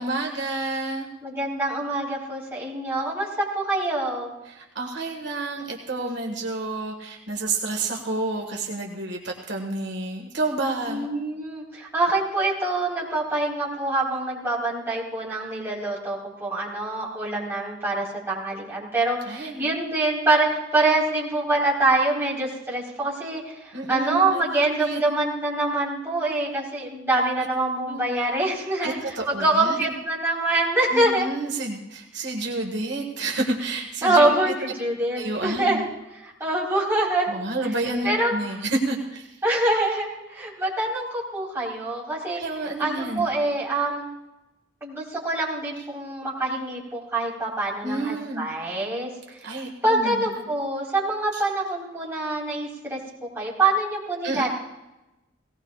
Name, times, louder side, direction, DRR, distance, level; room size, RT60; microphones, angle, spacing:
voice 1, 0.0-1.1 4.4-11.1 19.2-19.7 23.7-25.0 27.4-27.5 27.9-28.0 28.8-29.9 30.9-34.5 35.1-35.8 37.3-39.3 42.3-43.3 47.8-48.5 49.4-50.4 51.3-51.4 54.2-54.5, right 2 dB, 65° right, 1 dB, 1.6 m, -30 dB
voice 2, 1.2-4.3 10.9-23.5 23.9-31.3 34.0-35.8 36.2-37.3 38.0-38.3 39.4-42.4 42.8-44.1 44.8-49.1 49.4-53.0 53.4-54.5, right 2 dB, 15° right, -6 dB, 4.1 m, -25 dB
18.5 x 18.5 x 2.4 m, 0.97 s
head